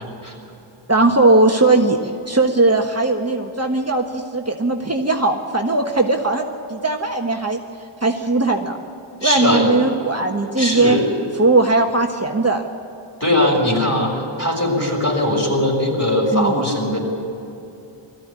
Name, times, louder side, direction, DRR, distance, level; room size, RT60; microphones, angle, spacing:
voice 1, 0.9-7.6 8.0-8.8 9.2-11.0 11.4-12.6 16.3-16.6, right 2 dB, 30° right, 2 dB, 1.4 m, -18 dB
voice 2, 9.2-9.7 10.6-11.0 13.2-17.0, left 1 dB, 30° left, -1 dB, 6.0 m, -20 dB
20.5 x 14.5 x 9.8 m, 2.8 s
wide cardioid pair, 60°, 49 cm